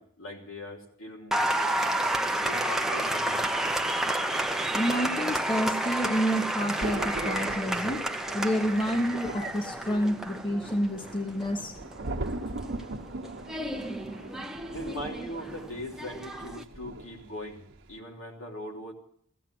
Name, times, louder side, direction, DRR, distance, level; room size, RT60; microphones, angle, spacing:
voice 1, 0.0-1.7 2.4-3.5 14.7-18.9, left 1 dB, 75° left, 0 dB, 3.3 m, -40 dB
Applause, 1.3-16.6, right 1 dB, ahead, 0.6 m, -31 dB
voice 2, 4.7-8.1 8.3-11.7, equal, 25° left, 3 dB, 1.0 m, -29 dB
Thunder, 6.8-17.4 17.7-18.0, right 2 dB, 60° right, 1.1 m, -40 dB
15.5 x 15.5 x 6.1 m, 0.63 s
head